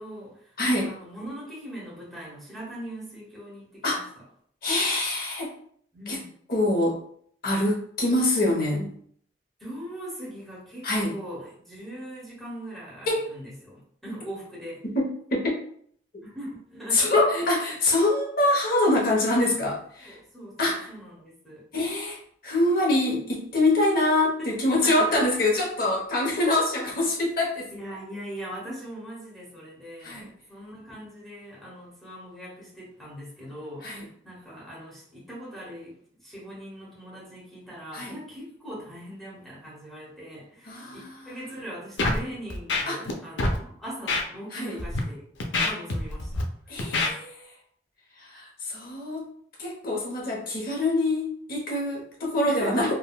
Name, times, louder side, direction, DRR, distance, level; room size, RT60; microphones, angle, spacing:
voice 1, 0.0-4.2 5.9-6.3 9.6-14.8 16.2-17.4 20.0-21.6 24.7-25.1 26.2-26.3 27.7-45.2 45.6-46.8 52.4-52.9, equal, ahead, -7 dB, 1.0 m, -41 dB
voice 2, 0.6-0.9 3.8-4.1 4.6-5.5 6.1-6.2 6.5-7.0 7.4-8.9 10.8-11.1 13.1-13.3 14.9-15.6 16.9-20.2 20.6-20.8 21.7-22.2 22.4-27.7 30.0-30.3 33.8-34.0 37.9-38.1 40.7-41.2 42.9-43.0 44.5-44.8 46.7-47.5 48.2-49.2 49.6-52.9, left 2 dB, 55° left, -2 dB, 0.9 m, -25 dB
Scratching (performance technique), 42.0-42.2 42.5-43.1 43.4-43.6 44.1-44.2 44.8-45.0 45.4-46.4 46.8-47.1, left 2 dB, 80° left, 0.5 m, -25 dB
3.6 x 2.2 x 2.3 m, 0.62 s
head